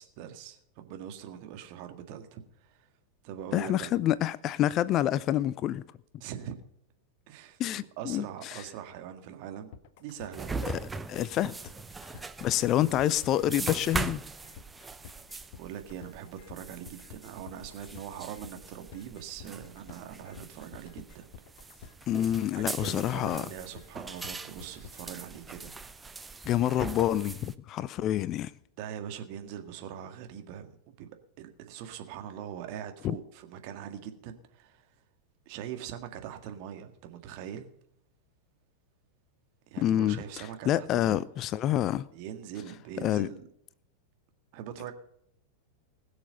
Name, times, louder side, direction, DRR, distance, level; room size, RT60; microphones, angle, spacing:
voice 1, 0.0-2.9 3.2-3.9 6.2-6.6 7.3-9.7 10.0-10.5 15.6-21.2 22.5-25.7 28.8-31.1 31.4-34.8 35.4-37.7 39.7-41.2 42.1-43.4 44.5-44.9, right 9 dB, 45° right, 1.8 m, -42 dB
voice 2, 3.5-5.8 7.6-8.6 11.1-11.5 12.4-14.2 22.1-23.5 26.5-28.5 33.0-33.2 39.8-42.0 43.0-43.3, left 12 dB, 35° left, 0.4 m, -27 dB
sound 1, 9.7-25.1, left 8 dB, 50° left, 1.0 m, -50 dB
sound 2, 10.3-27.6, right 4 dB, 10° right, 0.7 m, -41 dB
20.5 x 6.9 x 5.5 m
figure-of-eight pair, 90°, 0 cm